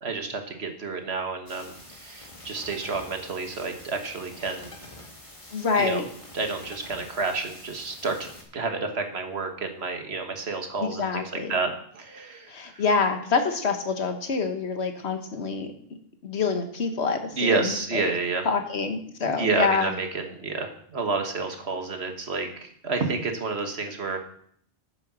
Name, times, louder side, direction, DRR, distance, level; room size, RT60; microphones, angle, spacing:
voice 1, 0.0-4.7 5.8-6.0 6.3-12.8 17.3-18.4 19.2-24.2, right 4 dB, 75° right, 5 dB, 1.7 m, -30 dB
sound 1, 1.5-8.4, left 1 dB, 30° left, 2.1 m, -46 dB
voice 2, 5.5-6.1 10.8-11.5 12.5-15.7 16.2-18.1 18.4-19.9, left 5 dB, 80° left, 6 dB, 1.5 m, -26 dB
9.6 x 6.9 x 6.2 m, 0.63 s
omnidirectional pair, 1.1 m